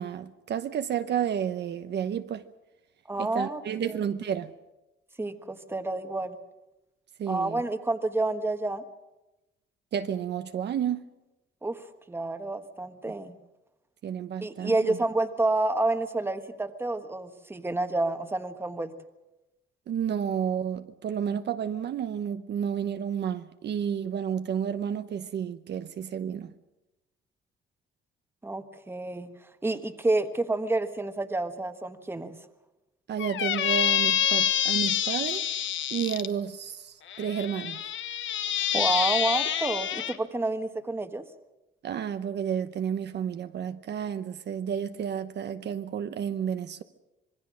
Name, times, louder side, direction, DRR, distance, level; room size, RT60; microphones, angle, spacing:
voice 1, 0.0-2.4 3.2-4.5 7.2-7.6 9.9-11.1 14.0-15.0 19.9-26.5 33.1-35.5 35.9-37.8 41.8-46.8, right 8 dB, 55° right, 0.9 m, -31 dB
voice 2, 3.1-4.0 5.2-6.3 7.3-8.8 11.6-11.8 12.1-13.3 14.4-18.9 28.4-29.3 29.6-32.4 38.7-41.2, right 2 dB, 10° right, 1.4 m, -29 dB
Squeak, 33.2-36.3 37.1-40.2, left 10 dB, 65° left, 1.3 m, -27 dB
26.5 x 21.0 x 6.3 m
cardioid pair, 140°, 21 cm